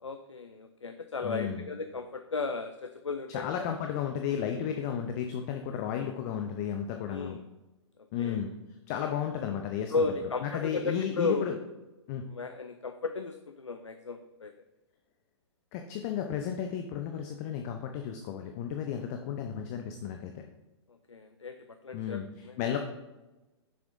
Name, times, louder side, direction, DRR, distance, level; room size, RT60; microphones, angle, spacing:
voice 1, 0.0-3.7 7.1-7.4 8.2-8.4 9.9-11.5 12.3-14.5 21.1-22.6, left 4 dB, 90° left, 8 dB, 0.4 m, -34 dB
voice 2, 1.2-1.7 3.3-7.4 8.1-8.5 8.9-10.0 10.4-11.6 12.1-12.2 15.7-20.4 21.9-22.8, left 8 dB, 35° left, 4 dB, 0.5 m, -33 dB
6.9 x 6.2 x 2.5 m, 1.1 s
figure-of-eight pair, 115°, 15 cm